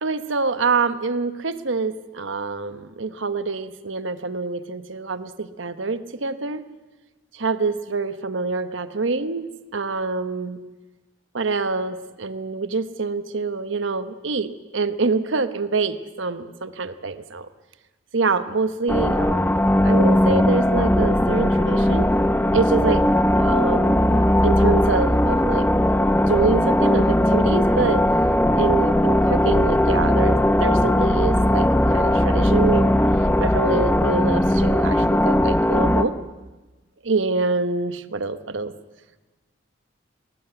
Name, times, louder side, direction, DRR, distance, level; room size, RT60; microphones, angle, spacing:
voice 1, 0.0-6.6 7.3-9.5 9.7-10.6 11.3-17.5 18.1-22.1 22.5-23.1 23.3-25.7 26.3-28.0 28.6-33.0 33.4-36.1 37.0-38.7, right 4 dB, 80° right, 12 dB, 1.0 m, -26 dB
sound 1, 18.9-36.0, left 1 dB, 10° left, 0.8 m, -18 dB
23.5 x 19.5 x 8.0 m, 1.2 s
head